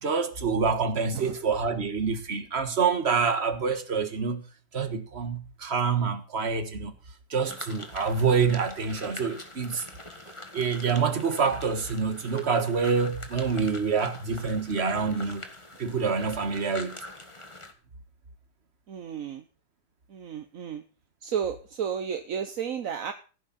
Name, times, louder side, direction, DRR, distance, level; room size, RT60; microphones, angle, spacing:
voice 1, 0.0-4.4 4.7-6.9 7.3-9.8 10.5-15.5 15.8-17.0, right 5 dB, 35° right, 1.6 m, -26 dB
sound 1, 7.5-17.7, left 2 dB, 15° left, 1.6 m, -44 dB
voice 2, 18.9-19.4 20.1-20.8 21.2-23.1, right 7 dB, 50° right, 1.1 m, -32 dB
16.5 x 10.0 x 4.2 m
omnidirectional pair, 2.2 m